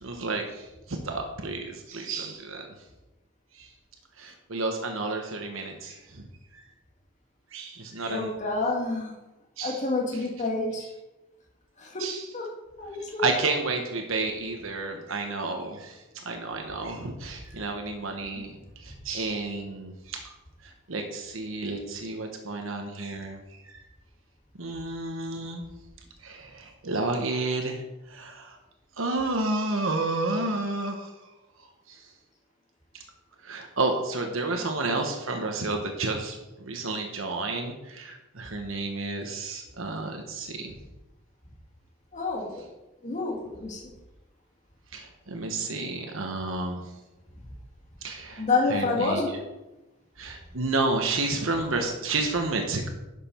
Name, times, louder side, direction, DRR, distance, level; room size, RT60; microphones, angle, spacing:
voice 1, 0.0-2.7 4.2-6.0 7.5-8.3 9.6-9.8 12.0-12.3 13.2-15.9 16.2-18.6 18.8-20.3 20.9-23.4 24.6-25.6 26.2-27.8 28.1-28.5 29.0-31.1 33.4-40.7 44.9-46.8 48.0-48.4 48.7-49.4 50.2-52.9, right 3 dB, 80° right, 4 dB, 1.2 m, -30 dB
voice 2, 8.1-9.1 9.6-10.9 11.8-12.1 12.3-12.5 12.8-13.3 34.5-34.6 42.1-42.6 43.0-43.8 48.4-49.3, left 3 dB, 35° left, -2 dB, 1.9 m, -28 dB
11.0 x 6.8 x 4.4 m, 1.0 s
head